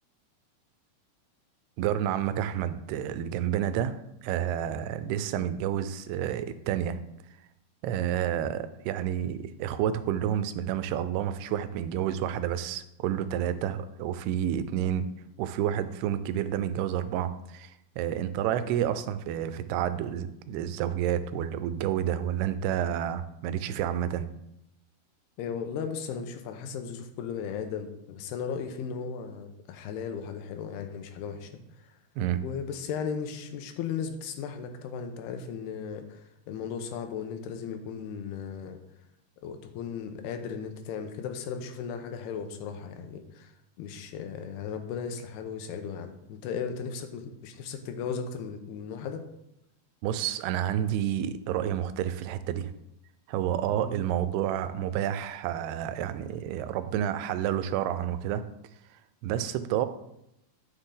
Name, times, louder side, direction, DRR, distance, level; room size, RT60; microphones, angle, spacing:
voice 1, 1.8-3.9 4.2-7.0 7.8-15.1 15.4-24.3 32.2-32.5 50.0-52.7 53.3-58.4 59.2-59.9, right 10 dB, 90° right, 12 dB, 2.7 m, -29 dB
voice 2, 25.4-32.0 32.4-38.8 39.4-43.5 43.8-49.3 53.7-54.0, left 6 dB, 85° left, 6 dB, 3.0 m, -36 dB
11.5 x 6.8 x 3.9 m, 0.83 s
omnidirectional pair, 4.5 m